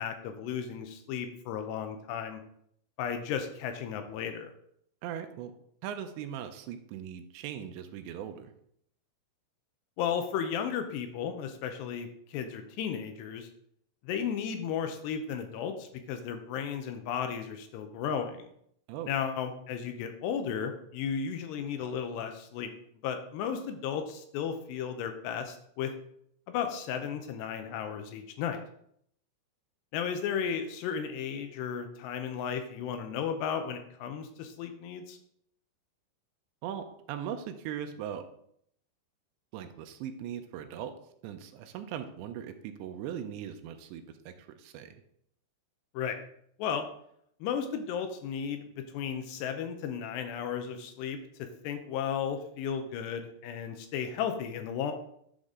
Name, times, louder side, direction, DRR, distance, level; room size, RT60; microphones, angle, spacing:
voice 1, 0.0-2.4 3.0-4.5 10.0-13.5 14.0-18.5 19.1-22.7 23.0-25.9 26.5-28.6 29.9-35.2 45.9-46.2 46.6-46.9 47.4-54.9, left 7 dB, 80° left, 7 dB, 2.7 m, -34 dB
voice 2, 5.0-5.5 5.8-8.5 18.9-19.1 36.6-38.3 39.5-41.0 41.2-44.9, right 9 dB, 85° right, 7 dB, 2.9 m, -39 dB
11.5 x 5.3 x 3.7 m, 0.69 s
omnidirectional pair, 5.3 m